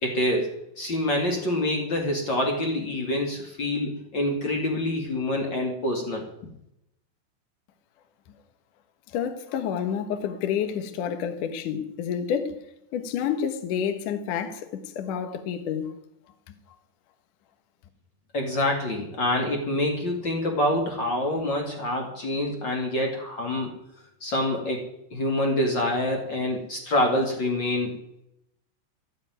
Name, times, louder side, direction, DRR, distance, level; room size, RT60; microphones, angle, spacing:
voice 1, 0.0-6.3 18.3-23.7 24.2-24.8 25.1-28.0, left 1 dB, 50° left, 1.3 m, -26 dB
voice 2, 9.1-12.6 12.9-15.9 16.5-16.6, left 8 dB, 85° left, 1.8 m, -29 dB
14.5 x 7.4 x 9.5 m
omnidirectional pair, 5.9 m